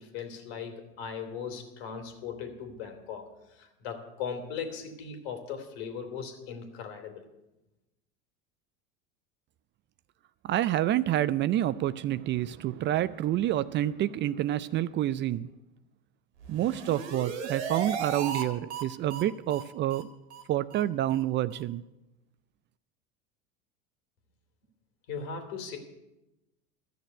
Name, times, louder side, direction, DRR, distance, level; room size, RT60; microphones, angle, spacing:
voice 1, 0.0-7.2 25.1-25.8, left 6 dB, 70° left, 5 dB, 2.9 m, -38 dB
voice 2, 10.4-15.5 16.5-20.1 20.5-21.8, right 13 dB, 35° right, 17 dB, 0.4 m, -28 dB
sound 1, 16.4-18.4 18.7-18.8 19.1-19.2 19.5-19.6 19.9-20.0 20.3-20.4 20.7-20.8 21.1-21.2 21.5-21.6, right 6 dB, 90° right, 2.0 m, -36 dB
13.5 x 6.6 x 9.4 m, 0.97 s
hypercardioid pair, 95°, 32 cm